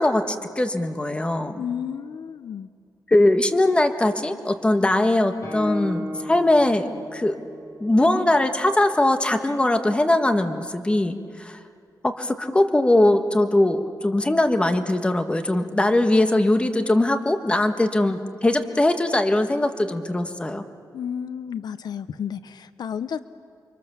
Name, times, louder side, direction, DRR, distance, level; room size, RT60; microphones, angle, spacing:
voice 1, 0.0-1.6 3.1-7.4 7.8-11.6 12.0-20.6, left 1 dB, 15° left, 7 dB, 1.5 m, -21 dB
voice 2, 1.6-2.7 20.9-23.2, left 8 dB, 75° left, 13 dB, 0.7 m, -31 dB
Guitar, 5.4-9.1, left 1 dB, 50° left, 6.3 m, -36 dB
29.5 x 24.5 x 7.2 m, 2.3 s
wide cardioid pair, 150°, 7 cm